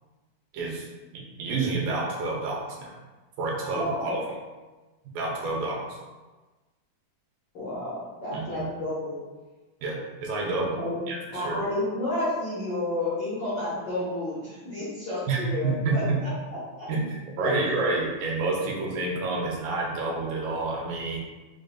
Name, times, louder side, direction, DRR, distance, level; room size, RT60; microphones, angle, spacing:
voice 1, 0.5-0.9 1.1-3.0 3.4-4.3 5.1-6.0 8.3-8.7 9.8-10.8 11.1-11.6 15.3-16.2 16.9-21.2, right 3 dB, 85° right, -2 dB, 2.3 m, -29 dB
voice 2, 3.8-4.2 7.5-9.2 10.7-11.0 11.3-16.3 16.8-16.9 17.4-17.7, left 1 dB, 85° left, -11 dB, 1.0 m, -31 dB
5.5 x 2.6 x 2.2 m, 1.2 s
omnidirectional pair, 3.7 m